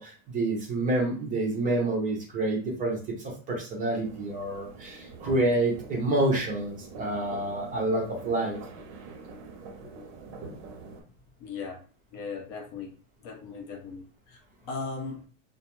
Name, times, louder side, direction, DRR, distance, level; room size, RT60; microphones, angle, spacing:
voice 1, 0.0-8.6, right 2 dB, 20° right, 0.5 m, -28 dB
sound 1, 4.0-11.0, right 4 dB, 60° right, 0.7 m, -45 dB
voice 2, 11.4-11.8 12.1-12.9 13.2-15.3, left 4 dB, 40° left, 0.5 m, -38 dB
2.3 x 2.3 x 2.9 m
supercardioid pair, 145°, 41 cm